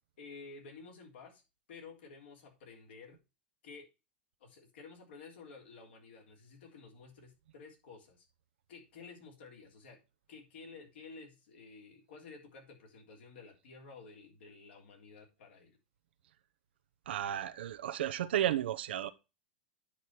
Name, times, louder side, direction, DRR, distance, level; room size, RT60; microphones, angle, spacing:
voice 1, 0.2-1.4 1.7-3.2 3.6-3.9 4.4-8.3 8.7-10.0 10.3-15.8, left 4 dB, 75° left, 3.5 m, -52 dB
voice 2, 17.1-19.1, right 11 dB, 80° right, 0.7 m, -33 dB
10.0 x 4.3 x 4.6 m
hypercardioid pair, 115°, 6 cm